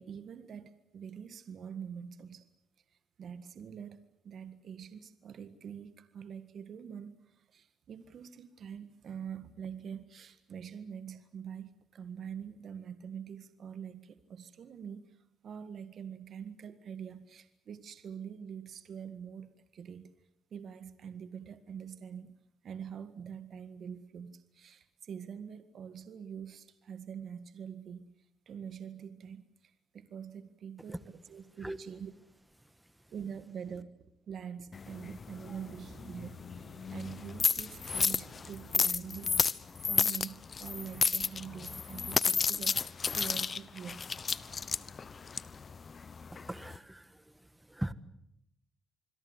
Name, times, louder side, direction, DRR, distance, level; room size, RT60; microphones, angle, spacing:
voice 1, 0.0-2.5 3.2-20.1 20.5-22.3 22.6-28.1 28.5-32.1 33.1-33.9 34.2-39.4 39.9-42.8 43.1-44.0, right 7 dB, 60° right, 11 dB, 1.7 m, -45 dB
sound 1, 33.6-39.6, right 7 dB, 85° right, 2.3 m, -56 dB
sound 2, 34.7-46.8, left 5 dB, 40° left, 1.0 m, -32 dB
voice 2, 46.5-47.2 47.7-47.9, right 1 dB, 10° right, 14 dB, 1.6 m, -38 dB
27.0 x 22.0 x 8.1 m, 0.79 s
cardioid pair, 90°, 0 cm